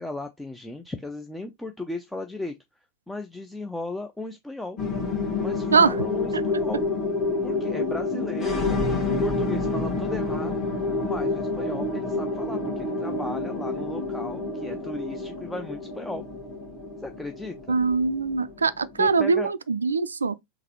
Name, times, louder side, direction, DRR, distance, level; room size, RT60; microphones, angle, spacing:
voice 1, 0.0-2.6 3.1-4.8 5.4-6.8 7.4-8.6 9.0-10.6 11.0-16.3 17.0-17.8 19.0-19.5, left 2 dB, 5° left, 0.4 m, -36 dB
sound 1, 4.8-19.4, left 3 dB, 30° left, 1.5 m, -28 dB
voice 2, 17.7-20.3, right 5 dB, 75° right, 0.3 m, -22 dB
3.9 x 2.9 x 2.9 m
figure-of-eight pair, 90°, 0 cm